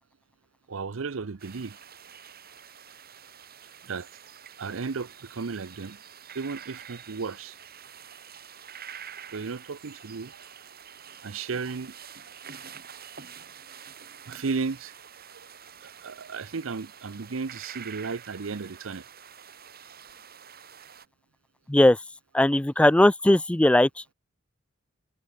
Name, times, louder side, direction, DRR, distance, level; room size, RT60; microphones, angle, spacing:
voice 1, 0.7-1.8 3.8-4.1 4.6-6.0 6.3-7.6 9.3-10.6 11.2-11.9 14.3-14.9 15.2-15.5 15.8-19.1, right 4 dB, 80° right, 0.7 m, -34 dB
sound 1, 1.4-21.1, right 8 dB, 50° right, 7.4 m, -47 dB
voice 2, 22.3-23.9, left 1 dB, 5° left, 0.3 m, -18 dB
head